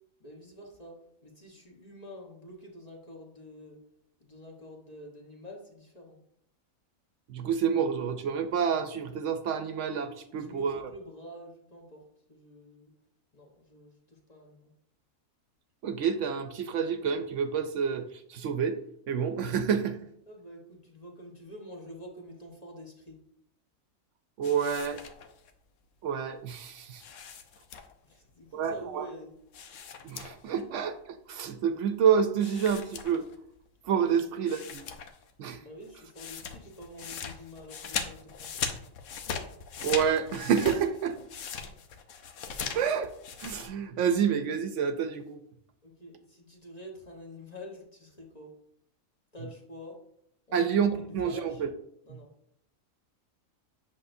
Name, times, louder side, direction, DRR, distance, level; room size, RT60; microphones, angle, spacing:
voice 1, 0.2-1.0 1.2-3.8 4.2-6.2 10.3-12.0 12.3-12.9 13.3-14.7 20.3-23.2 28.0-29.3 34.1-34.2 35.5-38.5 45.8-48.5 49.3-50.0 50.5-50.6 50.9-51.6 52.0-52.3, left 1 dB, 30° left, 0 dB, 1.1 m, -47 dB
voice 2, 7.3-10.9 15.8-18.8 19.1-20.0 24.4-25.0 26.0-27.0 28.5-29.1 30.0-33.2 33.8-34.8 35.4-35.6 39.8-41.2 42.7-43.1 43.4-45.4 50.5-51.7 52.1-52.2, right 7 dB, 70° right, 9 dB, 0.9 m, -28 dB
flipping through pages, 24.4-25.5 27.0-28.1 29.5-30.6 30.9-31.0 32.4-33.6 34.1-34.2 34.5-35.3 35.6-43.7, left 6 dB, 70° left, 1.1 m, -39 dB
8.1 x 6.1 x 2.6 m, 0.73 s
omnidirectional pair, 1.4 m